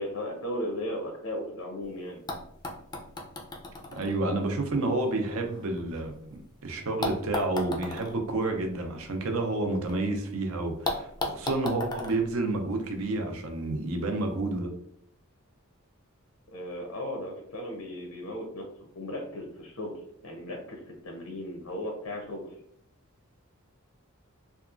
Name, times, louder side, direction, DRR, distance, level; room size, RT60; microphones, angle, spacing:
voice 1, 0.0-2.2 16.5-22.5, left 1 dB, 90° left, 1 dB, 0.6 m, -36 dB
sound 1, 1.8-1.9 2.3-6.4 7.0-10.0 10.2-10.3 10.8-13.2 14.2-14.3, left 2 dB, 20° left, 0.3 m, -37 dB
voice 2, 3.9-6.2 6.6-14.7, right 2 dB, 75° right, 4 dB, 0.5 m, -29 dB
2.8 x 2.3 x 2.4 m, 0.67 s
head